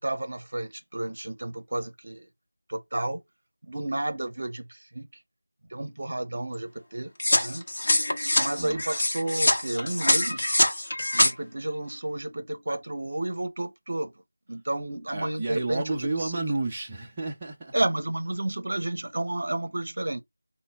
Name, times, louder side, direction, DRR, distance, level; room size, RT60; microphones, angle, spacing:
voice 1, 0.0-2.3 2.7-3.2 3.6-5.1 5.7-7.1 7.4-7.7 8.4-10.6 11.1-14.1 14.5-16.4 17.7-20.2, right 1 dB, 45° right, 0.9 m, -31 dB
sound 1, 7.2-11.3, left 1 dB, 35° left, 1.2 m, -24 dB
voice 2, 15.1-17.7, right 2 dB, 10° right, 0.6 m, -31 dB
5.3 x 2.3 x 3.5 m
figure-of-eight pair, 175°, 0 cm